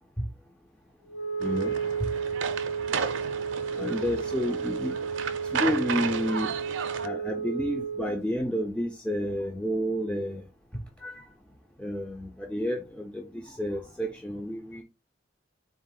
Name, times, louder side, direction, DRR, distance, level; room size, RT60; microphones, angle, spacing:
Wind instrument woodwind instrument, 1.1-8.2, right 6 dB, 75° left, 0.4 m, -32 dB
voice 1, 1.4-1.7 3.7-5.0 5.5-6.5 7.0-10.4 11.0-11.3 11.8-14.8, equal, 5° left, 0.3 m, -30 dB
sound 1, 1.4-7.1, right 6 dB, 85° right, 0.5 m, -34 dB
3.9 x 2.3 x 3.6 m
head